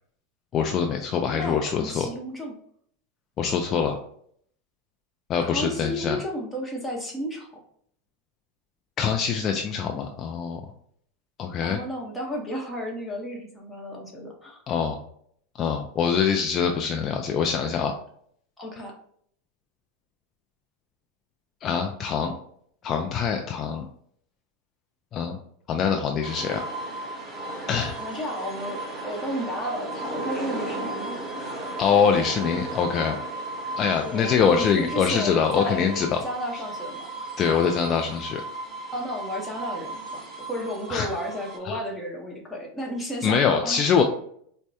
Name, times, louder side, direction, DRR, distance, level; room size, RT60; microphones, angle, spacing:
voice 1, 0.5-2.1 3.4-4.0 5.3-6.2 9.0-10.6 11.4-11.8 14.7-15.0 15.6-17.9 21.6-22.3 22.8-23.8 25.1-25.4 25.7-26.6 27.7-27.9 31.8-33.2 33.8-36.2 37.4-38.4 40.9-41.1 41.6-41.8 43.2-44.0, left 6 dB, 35° left, 3 dB, 0.4 m, -24 dB
voice 2, 1.1-2.6 5.4-7.5 11.6-14.6 18.6-18.9 28.0-31.6 34.0-37.3 38.9-44.0, equal, 5° left, -2 dB, 1.0 m, -33 dB
sound 1, 26.2-41.6, right 2 dB, 15° right, 1.4 m, -35 dB
4.4 x 2.1 x 2.7 m, 0.64 s
supercardioid pair, 120°, 0 cm